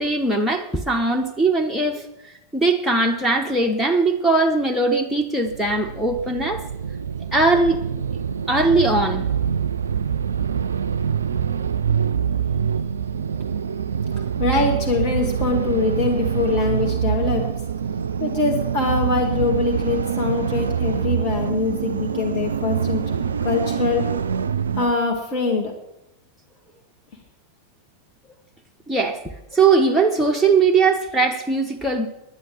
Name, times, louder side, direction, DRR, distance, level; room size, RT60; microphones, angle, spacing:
voice 1, 0.0-2.0 2.5-6.7 7.3-7.8 8.5-9.3 28.9-29.2 29.5-32.1, right 3 dB, ahead, -1 dB, 0.9 m, -20 dB
sound 1, 5.4-24.9, right 7 dB, 70° right, 0.3 m, -25 dB
voice 2, 14.4-17.5 18.2-23.2 23.4-24.0 24.8-25.7, left 3 dB, 45° left, 2 dB, 1.8 m, -23 dB
10.5 x 9.3 x 6.4 m, 0.89 s
figure-of-eight pair, 90°, 0 cm